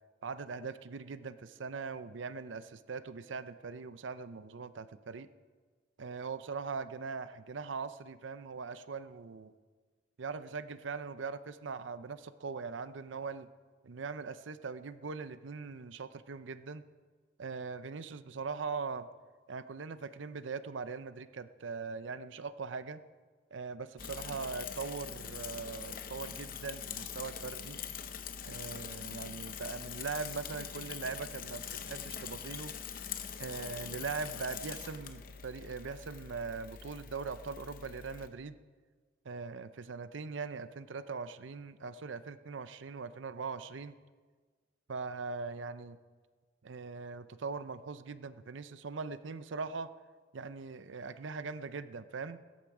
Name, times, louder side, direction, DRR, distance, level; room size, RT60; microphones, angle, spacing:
voice 1, 0.2-5.3 6.0-9.5 10.2-13.5 13.8-16.8 17.4-19.1 19.5-23.0 23.5-27.8 28.4-32.7 33.4-38.6 39.2-43.9 44.9-46.0 46.6-49.9 50.3-52.4, right 4 dB, 80° right, 13 dB, 0.6 m, -41 dB
Bicycle / Mechanisms, 24.0-38.3, left 7 dB, 45° left, 0.7 m, -43 dB
16.5 x 13.5 x 4.9 m, 1.5 s
head